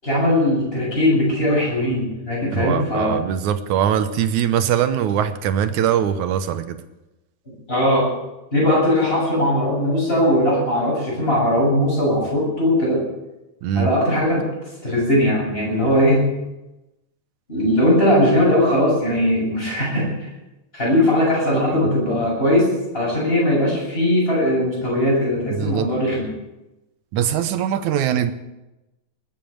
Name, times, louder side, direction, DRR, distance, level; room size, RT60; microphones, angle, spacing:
voice 1, 0.0-3.2 7.7-8.1 8.5-13.0 13.7-14.5 14.8-16.2 17.5-20.3 20.7-26.3, left 1 dB, 15° left, -4 dB, 7.9 m, -19 dB
voice 2, 2.5-6.8 13.6-13.9 21.8-21.9 25.5-25.9 27.1-28.3, right 9 dB, 75° right, 10 dB, 2.3 m, -21 dB
20.0 x 9.1 x 7.8 m, 0.98 s
omnidirectional pair, 3.6 m